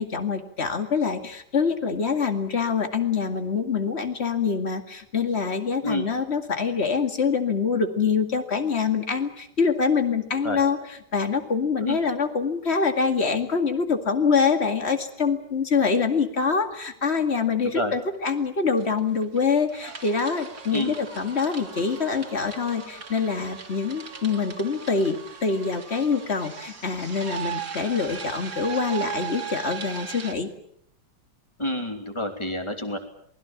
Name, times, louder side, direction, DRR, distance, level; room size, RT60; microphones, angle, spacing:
voice 1, 0.0-30.5, left 5 dB, 35° left, 7 dB, 2.4 m, -25 dB
sound 1, 18.2-18.3 18.6-19.4 19.7-30.3, right 7 dB, 50° right, 2.7 m, -38 dB
voice 2, 31.6-33.0, left 1 dB, 15° left, 5 dB, 3.0 m, -28 dB
27.0 x 21.0 x 7.3 m, 0.68 s
omnidirectional pair, 2.0 m